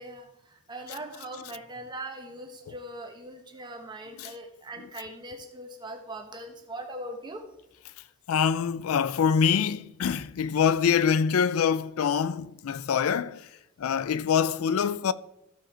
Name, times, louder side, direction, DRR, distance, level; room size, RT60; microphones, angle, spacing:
voice 1, 0.0-7.4, right 1 dB, 20° right, 1.3 m, -41 dB
voice 2, 8.3-13.5 13.8-15.1, left 7 dB, 90° left, 0.4 m, -25 dB
14.5 x 4.9 x 4.4 m
head